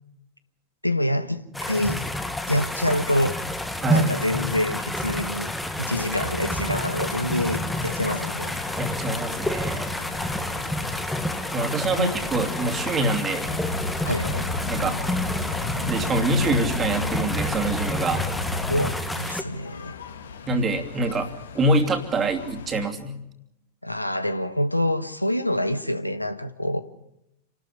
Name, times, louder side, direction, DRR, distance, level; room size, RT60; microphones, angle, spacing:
voice 1, 0.8-2.0 2.5-3.4 3.9-5.5 5.8-8.5 12.0-12.1 14.0-14.5 18.7-20.0 23.8-26.8, left 1 dB, 90° left, 1.2 m, -26 dB
sound 1, 1.5-19.4, left 1 dB, 5° left, 1.6 m, -29 dB
voice 2, 3.8-4.1 8.7-9.9 11.5-13.5 14.7-15.0 15.9-18.2 20.5-21.3 21.5-23.2, right 2 dB, 20° right, 2.8 m, -25 dB
sound 2, 6.4-22.9, left 6 dB, 65° left, 2.2 m, -42 dB
Car, 13.4-18.9, left 3 dB, 50° left, 4.6 m, -32 dB
28.0 x 13.0 x 9.9 m
figure-of-eight pair, 90°, 0 cm